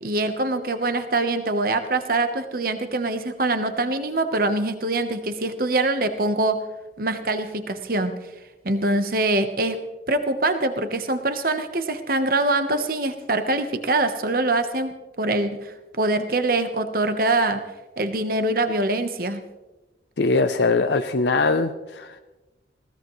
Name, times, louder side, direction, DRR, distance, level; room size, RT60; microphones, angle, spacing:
voice 1, 0.0-6.6 7.0-8.1 8.6-9.8 10.1-17.6 18.0-19.4, right 2 dB, 50° right, 9 dB, 1.1 m, -24 dB
voice 2, 20.2-22.2, left 3 dB, 65° left, 8 dB, 0.6 m, -21 dB
21.0 x 17.0 x 3.1 m, 1.1 s
head